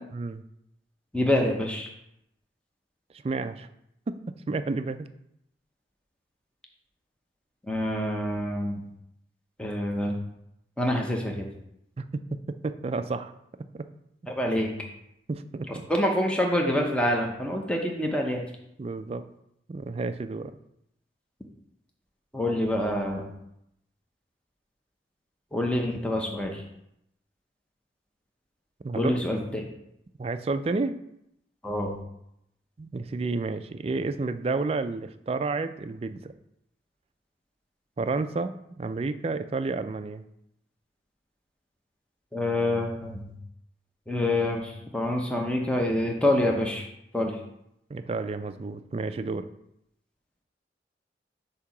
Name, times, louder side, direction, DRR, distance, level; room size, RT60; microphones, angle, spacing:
voice 1, 1.1-1.9 7.7-8.8 9.6-10.2 10.8-11.5 14.3-14.8 15.9-18.5 22.3-23.3 25.5-26.6 28.9-29.6 31.6-32.0 42.3-43.3 44.1-46.9 47.1-47.4, left 1 dB, 5° left, 0 dB, 0.7 m, -26 dB
voice 2, 3.2-3.7 4.1-4.2 4.5-5.1 12.0-12.1 12.6-13.3 13.7-13.9 15.3-15.9 18.8-19.2 19.7-20.5 28.8-29.1 30.2-31.0 32.8-36.3 38.0-40.2 47.9-49.5, right 3 dB, 35° right, 10 dB, 0.3 m, -30 dB
8.3 x 2.8 x 5.9 m, 0.78 s
head